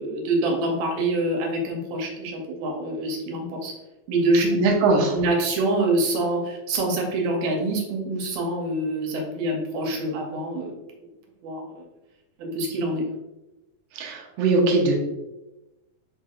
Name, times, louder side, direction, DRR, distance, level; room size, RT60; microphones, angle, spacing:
voice 1, 0.0-3.7 4.1-4.7 5.1-10.7 11.0-11.1 11.4-11.9 12.4-13.0, right 2 dB, 70° right, 1 dB, 1.9 m, -25 dB
voice 2, 4.6-5.2 13.9-15.0, right 3 dB, 90° right, 0 dB, 1.4 m, -21 dB
4.6 x 4.5 x 2.4 m, 1.0 s
omnidirectional pair, 3.9 m